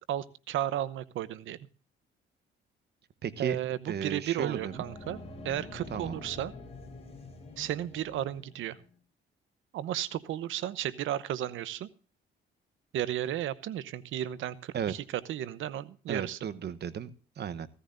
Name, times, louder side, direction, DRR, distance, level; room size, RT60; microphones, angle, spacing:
voice 1, 0.1-1.6 3.4-5.2 5.4-6.5 7.6-8.8 9.7-11.9 12.9-16.4, right 12 dB, 80° right, 17 dB, 0.9 m, -34 dB
voice 2, 3.2-3.6 3.9-4.8 5.9-6.2 14.7-14.9 16.1-17.7, right 8 dB, 55° right, 14 dB, 1.1 m, -34 dB
sound 1, 4.2-8.9, left 3 dB, 30° left, 4.4 m, -46 dB
16.0 x 14.0 x 2.6 m, 0.37 s
cardioid pair, 90°, 20 cm